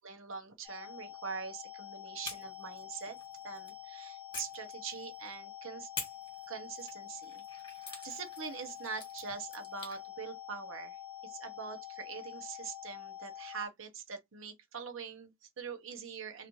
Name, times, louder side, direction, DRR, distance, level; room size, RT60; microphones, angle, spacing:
voice 1, 0.0-3.2 3.4-5.9 6.5-16.5, right 5 dB, 75° right, 0.9 m, -44 dB
sound 1, 0.6-13.7, left 10 dB, 10° right, 1.1 m, -47 dB
sound 2, 2.2-3.8 4.3-5.3 5.9-10.0, left 4 dB, 25° left, 1.4 m, -47 dB
3.1 x 2.6 x 3.0 m
head